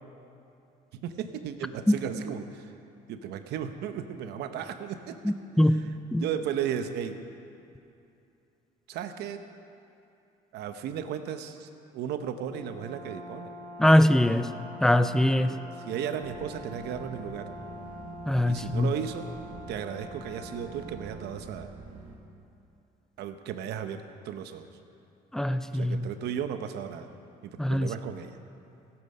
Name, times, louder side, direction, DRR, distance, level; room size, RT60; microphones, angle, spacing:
voice 1, 0.9-2.7 3.1-5.2 6.2-7.2 8.9-9.4 10.5-13.5 15.5-17.5 18.5-19.3 19.7-21.7 23.2-24.7 25.7-27.1 27.4-28.4, right 9 dB, 80° right, 8 dB, 0.9 m, -35 dB
voice 2, 5.2-5.8 6.1-6.2 13.8-14.5 14.8-15.5 18.3-18.9 25.3-26.1 27.6-27.9, left 1 dB, 5° left, 11 dB, 0.5 m, -22 dB
Brass instrument, 12.5-21.2, left 1 dB, 30° left, 2.0 m, -44 dB
sound 1, 16.2-22.2, right 4 dB, 55° right, 2.0 m, -46 dB
16.5 x 8.7 x 5.4 m, 2.7 s
cardioid pair, 110°, 17 cm